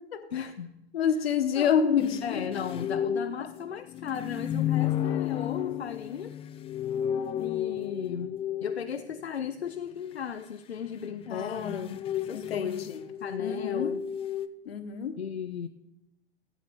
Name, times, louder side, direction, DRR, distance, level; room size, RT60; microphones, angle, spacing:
voice 1, 0.3-0.7 1.6-1.7 2.2-6.3 7.4-12.9 13.2-14.0 15.2-15.7, left 7 dB, 90° left, 8 dB, 0.5 m, -36 dB
voice 2, 0.9-2.6 11.3-11.9 12.3-13.0 13.4-13.9 14.6-15.1, left 7 dB, 70° left, 8 dB, 1.3 m, -28 dB
sound 1, 2.0-9.3 11.2-14.5, left 10 dB, 20° left, 0.4 m, -32 dB
13.5 x 8.5 x 3.6 m, 0.94 s
figure-of-eight pair, 90°, 31 cm